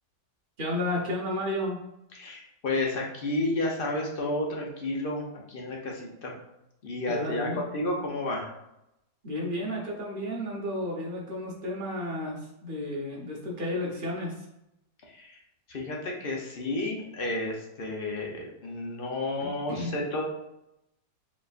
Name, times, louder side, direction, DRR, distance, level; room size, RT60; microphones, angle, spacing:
voice 1, 0.6-1.8 7.1-7.6 9.2-14.3 19.4-19.9, left 1 dB, 35° right, -2 dB, 1.0 m, -32 dB
voice 2, 2.1-6.3 6.8-8.6 15.1-15.4 15.7-20.2, left 2 dB, 45° left, -1 dB, 0.7 m, -31 dB
5.1 x 3.5 x 2.5 m, 0.85 s
omnidirectional pair, 1.8 m